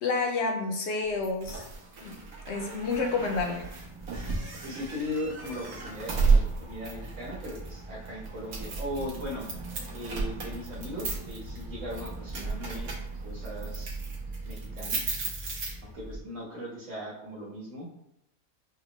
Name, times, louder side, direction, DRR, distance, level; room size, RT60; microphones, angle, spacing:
voice 1, 0.0-1.7 2.0-2.2 2.5-3.7, left 3 dB, 65° left, 3 dB, 0.7 m, -29 dB
sound 1, 1.2-16.2, right 4 dB, 85° right, 1.4 m, -33 dB
voice 2, 4.6-9.5 9.9-12.9 13.2-14.0 14.4-15.2 15.8-17.9, left 1 dB, 60° right, -5 dB, 1.7 m, -38 dB
5.8 x 2.2 x 2.9 m, 0.82 s
omnidirectional pair, 1.5 m